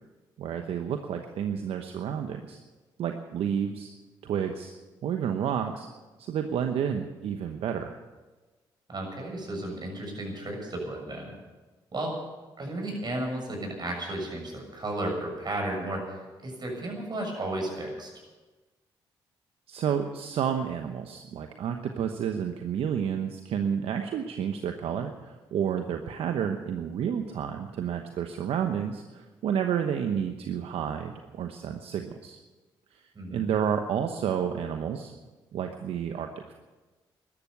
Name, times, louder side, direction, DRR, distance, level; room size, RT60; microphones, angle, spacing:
voice 1, 0.4-2.6 3.0-3.9 4.2-4.7 5.0-5.9 6.2-8.0 19.7-32.4 32.9-33.0 33.3-35.1 35.5-36.5, right 8 dB, 75° right, 6 dB, 1.0 m, -30 dB
voice 2, 8.9-11.3 11.9-12.1 12.6-18.1 33.1-33.4, right 1 dB, 45° right, 1 dB, 6.8 m, -33 dB
13.5 x 12.0 x 8.3 m, 1.2 s
supercardioid pair, 50°, 10 cm